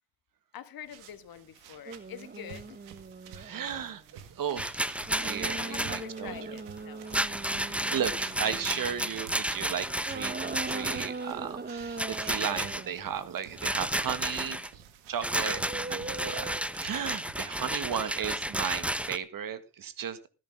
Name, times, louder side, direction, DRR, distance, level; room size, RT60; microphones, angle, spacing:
voice 1, 0.5-2.8 5.6-7.2 14.4-14.7, left 9 dB, 65° left, 1.8 m, -45 dB
sound 1, 0.8-17.3, right 8 dB, 85° right, 1.9 m, -52 dB
sound 2, 1.9-4.0 5.1-9.3 10.0-13.0 15.3-16.9 18.1-18.3, right 4 dB, 25° right, 1.3 m, -41 dB
voice 2, 3.4-6.4 7.6-14.8 15.1-16.5 16.8-20.3, right 8 dB, 60° right, 1.9 m, -35 dB
Rattle, 4.6-6.1 7.1-11.2 12.0-12.8 13.6-14.7 15.2-19.2, right 1 dB, 5° right, 1.0 m, -32 dB
16.5 x 10.5 x 3.7 m
hypercardioid pair, 45°, 37 cm